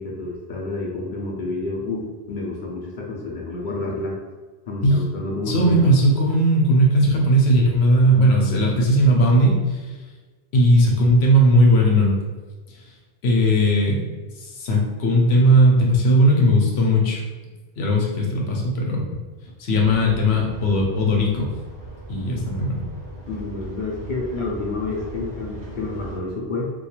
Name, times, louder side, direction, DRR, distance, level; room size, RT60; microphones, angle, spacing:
voice 1, 0.0-4.2 4.7-5.9 23.3-26.7, left 2 dB, 60° left, -3 dB, 0.6 m, -29 dB
voice 2, 5.5-9.8 10.5-12.1 13.2-14.0 14.4-17.2 17.8-19.0 19.6-21.5 22.1-22.8, equal, 85° left, -1 dB, 0.9 m, -17 dB
sound 1, 19.8-26.2, right 1 dB, 30° right, 0.4 m, -38 dB
2.3 x 2.3 x 2.9 m, 1.3 s
omnidirectional pair, 1.1 m